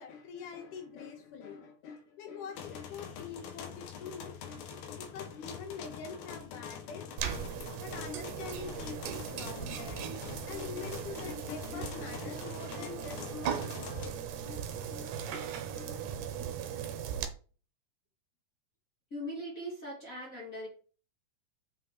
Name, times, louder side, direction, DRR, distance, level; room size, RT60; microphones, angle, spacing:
voice 1, 0.0-7.5 7.8-14.2 14.5-16.0, left 6 dB, 65° left, 2.9 m, -45 dB
sound 1, 2.6-14.1, left 7 dB, 85° left, 3.0 m, -45 dB
sound 2, 7.2-17.3, right 8 dB, 70° right, 2.3 m, -38 dB
voice 2, 19.1-20.7, equal, 25° left, 2.8 m, -40 dB
7.4 x 5.7 x 4.2 m
omnidirectional pair, 4.1 m